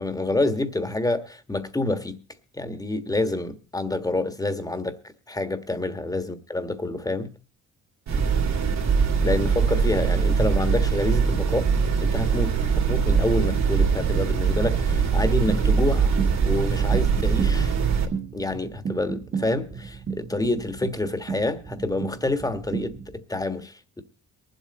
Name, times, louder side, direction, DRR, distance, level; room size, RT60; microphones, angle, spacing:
voice 1, 0.0-2.2 2.5-5.0 5.3-7.3 9.2-11.6 12.0-16.1 16.4-17.7 18.3-24.0, left 2 dB, 10° left, 1.4 m, -27 dB
sound 1, 8.1-18.1, right 6 dB, 60° right, 2.6 m, -22 dB
sound 2, 15.5-23.2, right 6 dB, 40° right, 1.6 m, -34 dB
23.0 x 7.9 x 4.1 m
cardioid pair, 90°, 30 cm